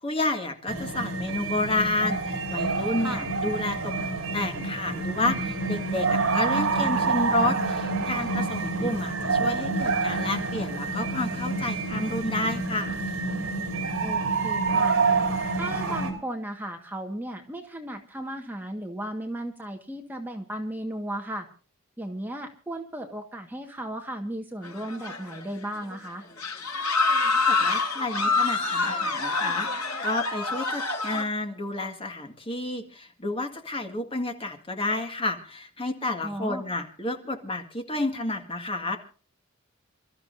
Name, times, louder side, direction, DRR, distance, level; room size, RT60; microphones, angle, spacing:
voice 1, 0.0-3.9 4.3-13.0 27.4-39.0, left 2 dB, 25° left, 4 dB, 1.9 m, -30 dB
sound 1, 0.7-16.1, right 3 dB, 65° right, 4.0 m, -27 dB
voice 2, 14.0-15.0 15.5-21.5 22.0-26.2 36.2-36.6, right 1 dB, 10° right, 3 dB, 1.6 m, -35 dB
sound 2, 24.6-25.5 25.8-25.9 26.4-31.2, left 3 dB, 85° left, 5.3 m, -26 dB
28.5 x 13.5 x 2.7 m, 0.38 s
head